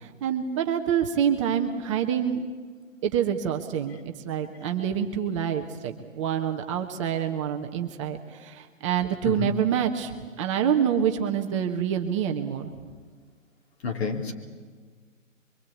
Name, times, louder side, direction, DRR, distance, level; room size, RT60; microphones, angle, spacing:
voice 1, 0.0-2.5 3.0-10.1 10.4-12.7, right 8 dB, 25° right, 4 dB, 1.2 m, -27 dB
voice 2, 13.8-14.3, left 5 dB, 50° left, 3 dB, 3.7 m, -29 dB
24.5 x 23.5 x 8.6 m, 1.5 s
figure-of-eight pair, 135°, 40 cm